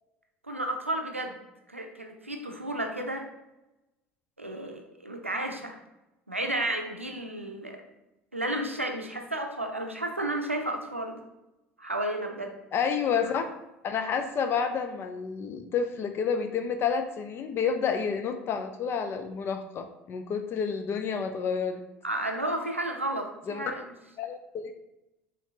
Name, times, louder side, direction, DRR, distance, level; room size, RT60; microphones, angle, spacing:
voice 1, 0.5-1.4 1.7-3.2 4.4-5.8 6.3-7.8 8.3-11.2 11.8-12.5 22.0-23.8, right 1 dB, 90° right, 3 dB, 0.5 m, -32 dB
voice 2, 12.7-13.5 13.8-21.8 23.5-23.6 24.2-24.7, left 6 dB, 35° left, 7 dB, 0.4 m, -29 dB
5.6 x 3.2 x 2.8 m, 0.95 s
figure-of-eight pair, 65°, 7 cm